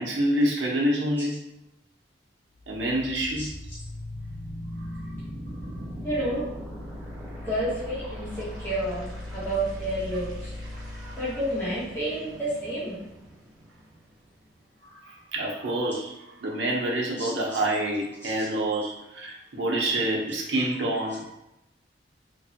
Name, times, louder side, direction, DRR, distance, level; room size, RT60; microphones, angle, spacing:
voice 1, 0.0-1.4 2.7-3.5 5.6-5.7 10.9-11.2 14.8-16.1 16.4-21.3, right 1 dB, 75° right, -2 dB, 0.6 m, -27 dB
sound 1, 2.5-14.5, left 1 dB, 20° right, 1.2 m, -39 dB
voice 2, 6.0-6.4 7.4-10.5 11.2-13.0 17.2-17.3 18.2-18.5, right 1 dB, 10° left, -11 dB, 0.9 m, -30 dB
3.0 x 2.1 x 2.8 m, 0.87 s
head